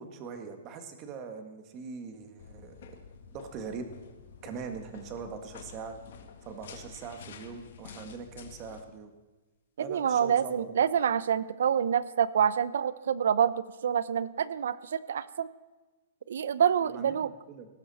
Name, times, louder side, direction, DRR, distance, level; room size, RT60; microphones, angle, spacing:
voice 1, 0.0-2.9 3.3-3.9 4.4-6.0 6.5-9.1 9.8-10.7 16.9-17.7, right 5 dB, 25° right, 6 dB, 1.8 m, -42 dB
sound 1, 2.4-8.8, left 7 dB, 65° left, 2.1 m, -49 dB
voice 2, 9.8-15.5 16.3-17.3, right 8 dB, 80° right, 17 dB, 0.8 m, -27 dB
19.0 x 15.0 x 4.3 m, 1.2 s
hypercardioid pair, 170°, 0 cm